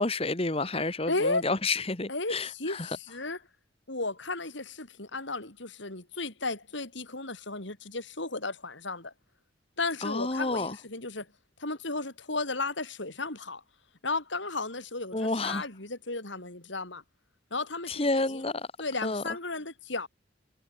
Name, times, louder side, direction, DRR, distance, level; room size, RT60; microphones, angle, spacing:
voice 1, 0.0-3.0 10.0-10.7 15.1-15.7 17.9-18.7 19.0-19.2, left 2 dB, 30° left, 1.5 m, -30 dB
voice 2, 1.1-1.5 2.1-3.4 3.9-9.1 9.8-11.3 11.6-13.6 14.0-17.0 17.5-18.4 18.8-20.1, left 3 dB, 65° left, 4.6 m, -34 dB
head